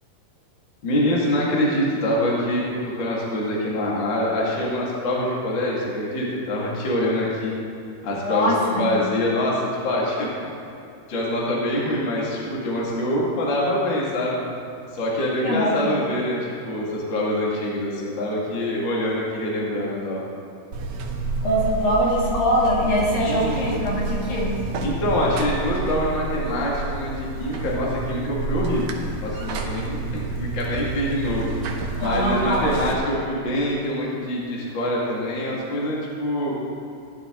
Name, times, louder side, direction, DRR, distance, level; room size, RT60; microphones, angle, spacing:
voice 1, 0.8-7.5 8.0-10.3 11.1-14.5 14.9-20.2 23.2-23.7 24.8-31.5 32.0-36.5, left 1 dB, 35° left, -5 dB, 2.3 m, -25 dB
voice 2, 8.3-8.9 10.4-10.5 15.4-15.8 21.4-24.6 32.0-32.8, equal, 65° left, -5 dB, 4.0 m, -23 dB
Buzz, 20.7-32.9, right 3 dB, 70° right, 2.0 m, -29 dB
17.0 x 11.0 x 3.8 m, 2.6 s
omnidirectional pair, 4.4 m